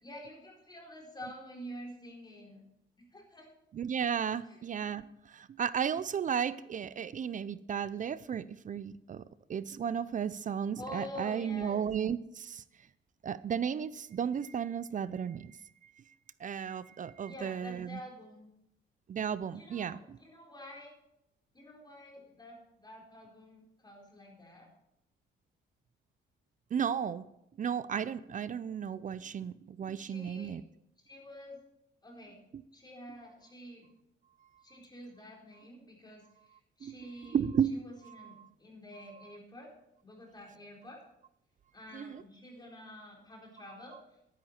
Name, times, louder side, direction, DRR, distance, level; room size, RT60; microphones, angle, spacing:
voice 1, 0.0-2.7 3.0-3.5 4.4-4.7 10.8-11.8 17.2-18.5 19.5-20.9 21.5-24.7 30.0-30.6 31.0-31.6 32.0-32.4 32.7-33.9 34.6-37.4 37.7-39.7 40.0-41.0 41.7-44.0, left 1 dB, 20° left, -1 dB, 4.1 m, -48 dB
voice 2, 3.7-9.2 9.5-12.6 13.2-15.6 16.4-18.0 19.1-20.2 26.7-27.3 27.6-30.6 32.5-32.6 36.8-36.9 37.2-37.7 38.1-38.5 41.9-42.2, right 8 dB, 40° right, 17 dB, 0.5 m, -34 dB
11.5 x 10.0 x 4.4 m, 0.82 s
cardioid pair, 90°, 20 cm